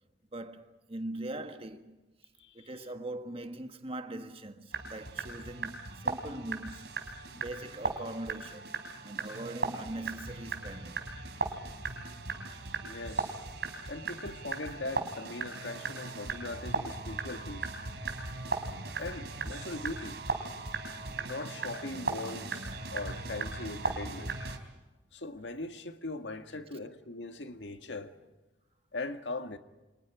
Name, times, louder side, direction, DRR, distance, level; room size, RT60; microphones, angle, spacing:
voice 1, 0.3-2.0 2.5-11.1, right 1 dB, 35° right, 1.6 m, -41 dB
voice 2, 2.4-2.7 7.3-7.4 9.2-9.4 12.1-12.2 12.8-13.3 13.9-17.7 19.0-20.2 21.2-24.3 25.1-28.1 28.9-29.6, left 2 dB, 80° left, 1.9 m, -40 dB
sound 1, 4.7-24.6, right 4 dB, 65° right, 3.8 m, -37 dB
30.0 x 26.0 x 5.0 m
head